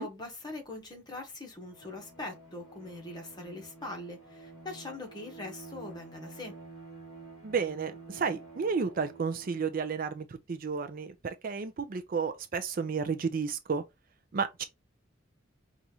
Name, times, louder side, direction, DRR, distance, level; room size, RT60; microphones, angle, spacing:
voice 1, 0.0-6.5, left 2 dB, 20° left, 1.2 m, -42 dB
Bowed string instrument, 1.6-10.1, right 3 dB, 5° right, 2.5 m, -50 dB
voice 2, 7.4-13.8 14.3-14.6, right 5 dB, 45° right, 0.4 m, -32 dB
5.3 x 2.4 x 2.8 m
head